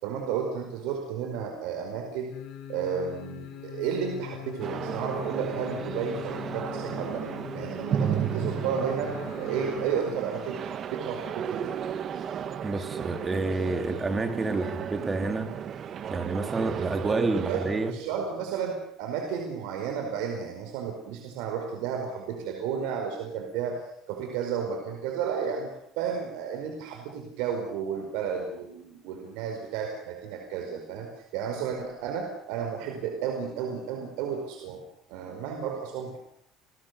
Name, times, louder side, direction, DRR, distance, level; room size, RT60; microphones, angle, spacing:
voice 1, 0.0-2.3 2.7-7.3 7.5-11.7 17.5-17.6 17.9-23.8 24.1-34.8 35.1-36.2, right 7 dB, 85° right, 3 dB, 5.0 m, -32 dB
sound 1, 2.3-10.2 10.5-10.6, left 10 dB, 70° left, 7.2 m, -41 dB
sound 2, 4.6-17.9, right 8 dB, 40° right, 1.5 m, -34 dB
voice 2, 12.6-15.5 16.1-17.9, right 3 dB, 15° right, 7 dB, 2.9 m, -29 dB
30.0 x 20.5 x 6.9 m, 0.70 s
cardioid pair, 155°, 0 cm